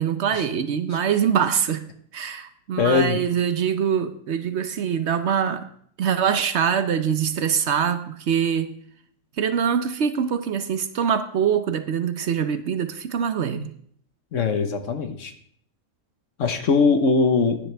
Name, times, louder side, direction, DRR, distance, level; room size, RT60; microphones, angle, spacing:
voice 1, 0.0-1.8 2.1-5.7 6.0-8.7 9.4-13.7, right 7 dB, 60° right, 11 dB, 0.9 m, -24 dB
voice 2, 2.8-3.2 14.3-15.3 16.4-17.6, left 4 dB, 65° left, 8 dB, 1.4 m, -21 dB
15.5 x 10.0 x 3.4 m, 0.63 s
omnidirectional pair, 1.4 m